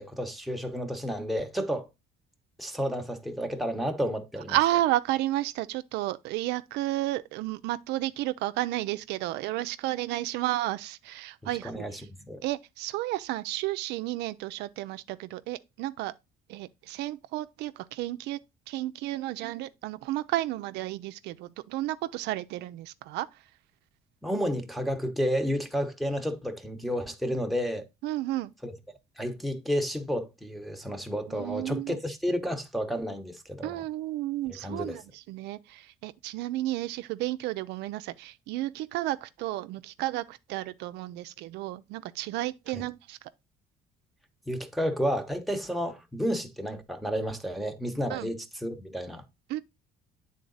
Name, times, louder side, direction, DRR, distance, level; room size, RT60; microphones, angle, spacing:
voice 1, 0.0-1.9 2.6-4.6 11.6-11.9 12.3-12.4 24.2-27.9 28.6-28.7 29.2-33.8 34.6-35.0 44.5-49.2, equal, ahead, 0.9 m, -31 dB
voice 2, 4.5-12.1 12.4-16.1 16.5-18.4 18.7-23.4 28.0-28.5 31.3-32.0 33.6-43.3 48.1-48.3 49.5-49.6, right 16 dB, 85° right, 0.4 m, -32 dB
8.4 x 3.9 x 3.9 m
cardioid pair, 110°, 17 cm